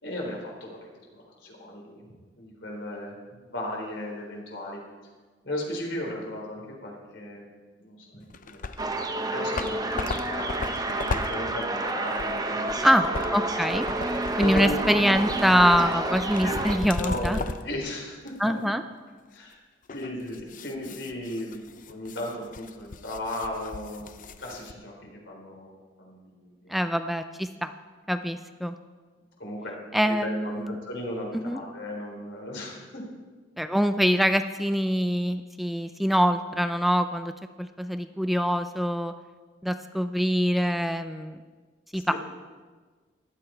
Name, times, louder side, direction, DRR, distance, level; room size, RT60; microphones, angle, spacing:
voice 1, 0.0-2.1 2.4-4.8 5.4-7.5 7.8-13.2 14.4-14.8 16.4-18.5 19.3-19.6 19.9-26.8 29.4-29.8 30.0-33.0 42.1-42.2, left 1 dB, 75° left, -1 dB, 3.8 m, -36 dB
sound 1, 8.3-9.0 9.3-17.7 18.3-18.4 19.9-24.7, left 3 dB, 45° left, 0.6 m, -36 dB
sound 2, 8.8-16.8, right 2 dB, 20° right, 0.9 m, -29 dB
voice 2, 13.3-13.9 14.4-17.4 18.4-18.8 26.7-27.7 28.1-28.7 29.9-30.7 31.3-31.6 33.6-37.3 37.6-39.1 39.6-41.4 41.9-42.2, equal, ahead, 8 dB, 0.4 m, -24 dB
15.0 x 11.5 x 4.5 m, 1.4 s
head